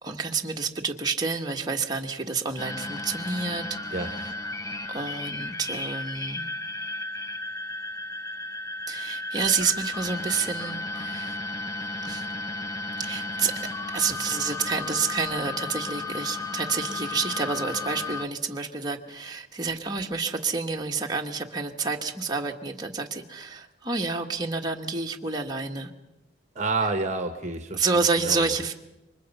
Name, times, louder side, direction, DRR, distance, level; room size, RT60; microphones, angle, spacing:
voice 1, 0.0-4.3 4.9-6.5 8.9-11.4 12.0-12.3 13.0-13.5 13.9-25.9 27.7-28.7, right 4 dB, 20° right, 1.7 m, -29 dB
sound 1, 2.6-18.3, left 2 dB, 15° left, 0.8 m, -34 dB
voice 2, 26.5-27.8 28.2-28.5, right 3 dB, 35° right, 1.3 m, -28 dB
28.5 x 24.0 x 5.6 m
head